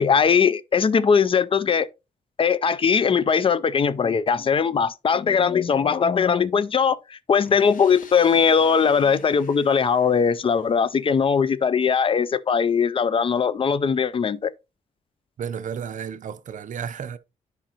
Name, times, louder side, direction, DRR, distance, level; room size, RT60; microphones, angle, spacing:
voice 1, 0.0-1.9 2.4-14.5, left 6 dB, 40° left, 0.4 m, -20 dB
sound 1, 7.4-11.2, left 6 dB, 70° left, 1.2 m, -47 dB
voice 2, 15.4-17.2, right 7 dB, 60° right, 0.5 m, -32 dB
10.0 x 5.0 x 2.8 m
cardioid pair, 115°, 15 cm